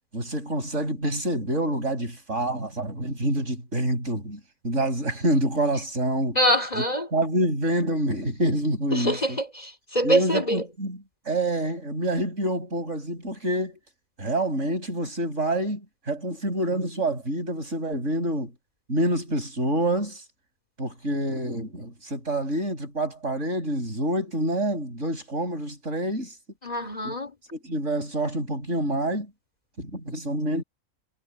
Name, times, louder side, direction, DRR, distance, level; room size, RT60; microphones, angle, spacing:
voice 1, 0.1-6.4 6.7-6.8 7.1-9.4 10.0-13.8 14.2-18.5 18.9-20.2 20.8-26.3 27.0-27.1 27.5-29.3 29.8-30.6, right 1 dB, 60° right, 7.7 m, -27 dB
voice 2, 6.4-7.1 8.9-10.6 26.6-27.3, equal, 30° left, 3.8 m, -24 dB
omnidirectional pair, 1.4 m